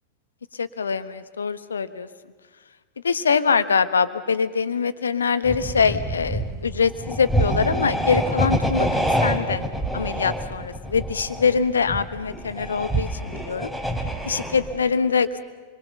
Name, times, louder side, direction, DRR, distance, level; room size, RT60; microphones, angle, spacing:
voice 1, 0.6-2.1 3.0-8.9 9.2-9.6 9.9-13.7 14.2-15.4, left 5 dB, 70° left, 13 dB, 1.2 m, -23 dB
sound 1, 5.4-14.8, right 1 dB, 5° right, 3.4 m, -26 dB
27.5 x 23.0 x 6.8 m, 1.4 s
figure-of-eight pair, 90°, 0 cm